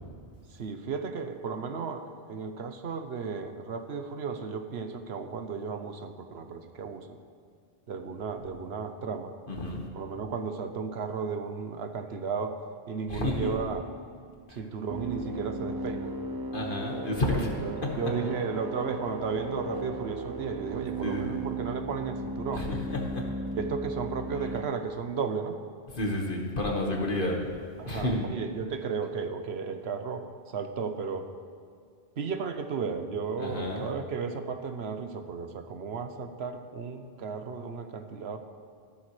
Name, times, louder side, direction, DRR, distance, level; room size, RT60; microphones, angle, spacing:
voice 1, 0.5-7.2 7.9-9.3 9.9-12.6 12.9-13.8 14.5-16.1 17.3-22.7 23.6-25.6 26.8-26.9 27.8-31.3 32.2-38.4, right 5 dB, 85° right, 7 dB, 1.1 m, -34 dB
voice 2, 9.5-9.8 13.1-13.5 14.5-14.6 16.5-17.5 17.8-18.0 21.0-21.5 22.5-23.2 25.9-27.4 27.9-28.3 33.4-33.9, left 1 dB, 55° left, 0 dB, 1.8 m, -30 dB
sound 1, 14.9-24.6, right 2 dB, 30° right, 0.5 m, -36 dB
14.0 x 12.5 x 3.3 m, 2.3 s
omnidirectional pair, 1.1 m